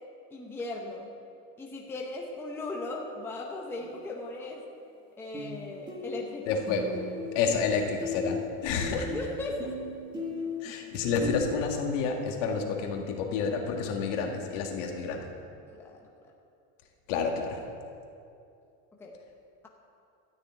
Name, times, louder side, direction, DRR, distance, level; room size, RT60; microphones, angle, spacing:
voice 1, 0.3-1.1 1.6-4.6 5.2-6.6 7.4-7.8 9.0-9.8 15.7-16.1 19.0-19.1, left 2 dB, 5° left, -1 dB, 0.8 m, -38 dB
sound 1, 3.8-4.0 5.3-5.6 5.9-7.7 8.0-11.5, left 2 dB, 10° right, 1.7 m, -37 dB
voice 2, 6.5-6.9 7.3-9.1 10.6-15.3 17.1-17.6, left 5 dB, 65° left, 2 dB, 2.0 m, -29 dB
13.0 x 6.7 x 9.3 m, 2.6 s
cardioid pair, 175°, 39 cm